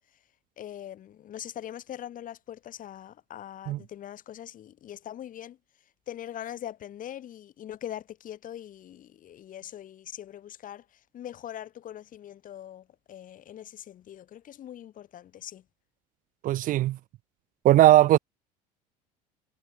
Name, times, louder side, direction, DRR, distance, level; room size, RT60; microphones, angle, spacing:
voice 1, 0.6-5.6 6.1-15.6, left 11 dB, 40° left, 1.3 m, -42 dB
voice 2, 16.4-17.0 17.6-18.2, right 14 dB, 40° right, 0.5 m, -18 dB
figure-of-eight pair, 70°, 21 cm